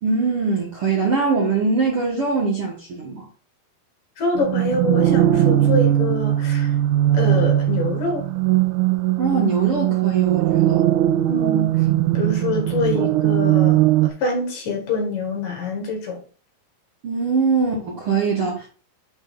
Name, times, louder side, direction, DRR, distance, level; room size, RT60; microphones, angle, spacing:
voice 1, 0.0-3.3 9.2-10.8 17.0-18.7, right 4 dB, 55° right, 1.7 m, -22 dB
voice 2, 4.2-6.7 7.1-8.3 11.3-11.8 12.1-16.2, left 3 dB, 65° left, 3.4 m, -25 dB
sound 1, 4.4-14.1, right 13 dB, 80° right, 1.8 m, -19 dB
9.9 x 4.2 x 3.7 m
omnidirectional pair, 4.2 m